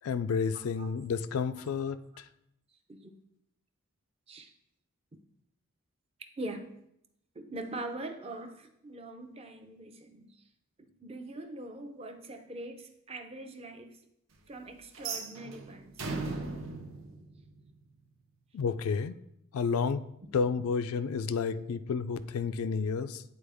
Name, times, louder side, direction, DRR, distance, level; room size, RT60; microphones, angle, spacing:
voice 1, 0.0-2.2 18.5-19.1 19.5-20.1 20.3-23.2, left 5 dB, 80° left, 13 dB, 0.3 m, -31 dB
voice 2, 6.4-6.7 7.3-10.4 10.8-14.0 14.5-16.0, right 2 dB, 25° right, 6 dB, 0.5 m, -42 dB
sound 1, 14.9-18.0, right 3 dB, 65° right, 0.7 m, -38 dB
8.7 x 4.2 x 3.4 m, 0.77 s
head